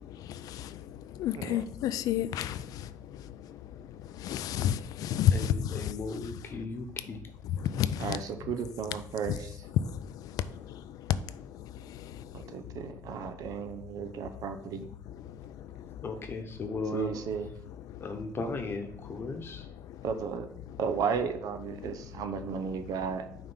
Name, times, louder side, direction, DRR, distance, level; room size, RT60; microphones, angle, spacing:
voice 1, 1.2-2.6 4.2-5.9 7.6-8.2 9.3-9.4, left 10 dB, 80° left, 0.4 m, -29 dB
voice 2, 5.3-7.2 16.0-17.2 18.0-19.6, left 3 dB, 40° left, 1.0 m, -36 dB
voice 3, 8.0-9.6 12.3-14.9 16.9-17.5 20.0-20.5 20.8-23.3, right 6 dB, 75° right, 0.7 m, -34 dB
5.5 x 3.5 x 5.6 m
cardioid pair, 120°, 6 cm